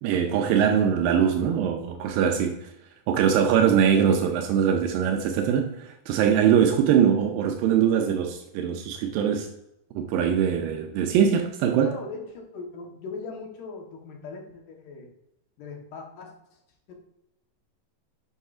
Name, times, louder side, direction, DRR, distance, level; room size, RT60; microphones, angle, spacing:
voice 1, 0.0-2.7 3.1-9.5 10.0-11.9, right 8 dB, 85° right, 2.3 m, -22 dB
voice 2, 11.8-15.1 15.6-16.3 16.9-17.0, left 4 dB, 75° left, 2.7 m, -39 dB
8.2 x 5.6 x 2.4 m
omnidirectional pair, 4.0 m